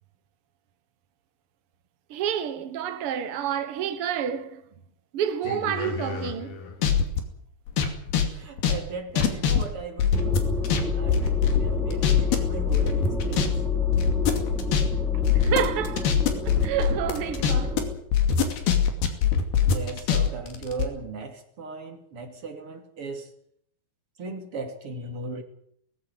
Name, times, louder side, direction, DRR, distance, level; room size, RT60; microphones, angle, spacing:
voice 1, 2.1-4.6 5.1-6.6 15.3-16.2 16.4-17.8, right 9 dB, 80° right, 1.2 m, -29 dB
sound 1, 5.5-7.2 7.7-10.8 11.1-12.4 12.7-13.5 13.7-17.8 18.1-20.9, left 8 dB, 75° left, 4.4 m, -23 dB
voice 2, 8.3-10.5 10.9-13.6 19.6-23.3 24.2-25.4, right 4 dB, 35° right, 3.6 m, -37 dB
sound 2, 10.1-17.9, left 5 dB, ahead, 4.1 m, -27 dB
19.0 x 15.0 x 9.2 m
omnidirectional pair, 4.5 m